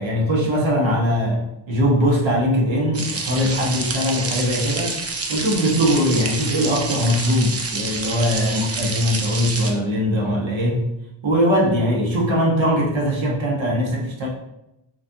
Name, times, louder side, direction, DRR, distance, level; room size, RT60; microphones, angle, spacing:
voice 1, 0.0-5.0 5.3-10.9 11.2-14.3, equal, 65° right, -2 dB, 1.3 m, -21 dB
sound 1, 2.9-9.7, right 3 dB, 30° right, 0.7 m, -28 dB
4.1 x 3.2 x 2.7 m, 0.87 s
cardioid pair, 75°, 50 cm